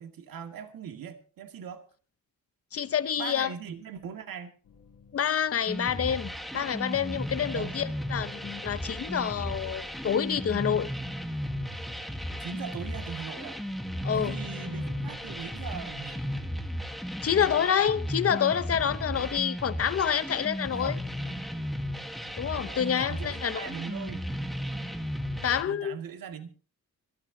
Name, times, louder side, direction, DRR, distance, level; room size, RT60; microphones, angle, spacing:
voice 1, 0.0-1.8 3.2-4.5 7.5-7.8 12.4-13.6 14.1-16.3 20.7-20.9 21.2-21.5 22.7-24.3 25.7-26.5, right 8 dB, 80° right, 2.2 m, -40 dB
voice 2, 2.7-3.5 5.1-10.9 14.0-14.3 17.2-21.0 22.4-23.7 25.4-26.0, left 8 dB, 45° left, 0.8 m, -28 dB
sound 1, 4.6-6.9 7.2-12.4 13.3-18.8, left 5 dB, 80° left, 3.2 m, -55 dB
sound 2, 5.7-25.6, equal, ahead, 1.3 m, -35 dB
25.5 x 12.0 x 2.8 m
wide cardioid pair, 135°, 34 cm